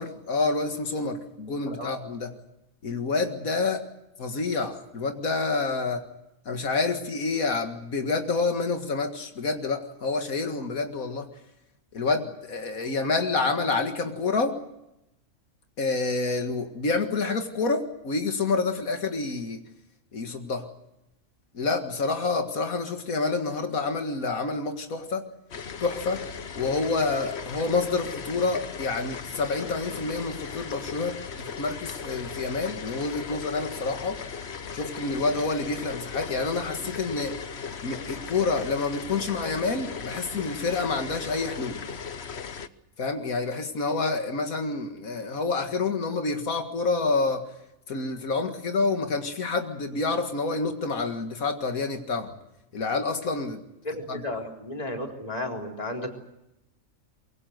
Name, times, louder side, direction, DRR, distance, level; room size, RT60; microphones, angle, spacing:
voice 1, 0.0-2.3 2.8-3.8 4.2-6.1 6.5-11.3 11.9-14.6 15.8-19.6 20.1-20.7 21.5-25.3 25.8-26.2 26.5-34.2 34.7-37.4 37.8-41.8 43.0-47.5 47.9-52.3 52.7-53.6 54.1-54.2, left 3 dB, 85° left, 5 dB, 2.3 m, -28 dB
sound 1, 25.5-42.7, left 6 dB, 55° left, 1.3 m, -37 dB
voice 2, 53.8-56.1, left 1 dB, 30° left, 1 dB, 3.9 m, -33 dB
24.0 x 23.5 x 7.9 m, 0.87 s
omnidirectional pair, 1.4 m